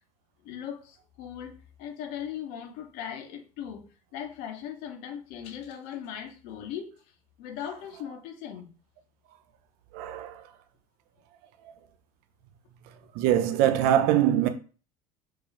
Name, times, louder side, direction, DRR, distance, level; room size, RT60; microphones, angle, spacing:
voice 1, 0.4-1.5 1.8-3.8 4.1-6.9 7.4-8.7, left 9 dB, 60° left, 0.8 m, -38 dB
voice 2, 9.9-10.4 13.1-14.5, right 11 dB, 55° right, 0.6 m, -23 dB
4.6 x 2.4 x 3.1 m
hypercardioid pair, 75°, 18 cm